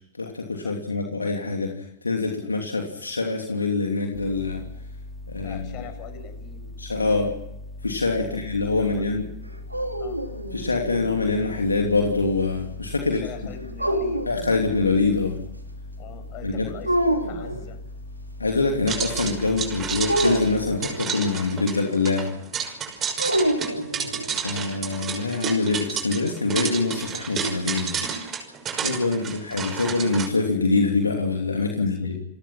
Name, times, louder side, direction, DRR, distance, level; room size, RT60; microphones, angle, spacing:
voice 1, 0.2-4.6 5.3-5.6 6.8-7.3 7.8-9.2 10.5-13.2 14.3-15.4 16.4-16.7 18.4-22.3 24.4-27.9 28.7-32.2, left 3 dB, 80° left, 2 dB, 2.9 m, -24 dB
sound 1, 4.1-20.8, left 2 dB, 10° right, 4.0 m, -40 dB
voice 2, 5.4-6.8 8.2-8.4 8.8-9.1 10.0-10.2 13.0-14.3 16.0-17.8 23.3-23.7 29.1-29.4 31.8-32.2, left 6 dB, 40° left, 7 dB, 7.8 m, -42 dB
sound 2, 9.5-11.3 13.8-15.0 16.8-17.6 20.1-21.1 23.2-24.4, equal, 85° right, 3.0 m, -27 dB
sound 3, 18.9-30.3, right 6 dB, 25° right, 5.7 m, -31 dB
29.0 x 19.5 x 5.9 m, 0.83 s
figure-of-eight pair, 90°, 0 cm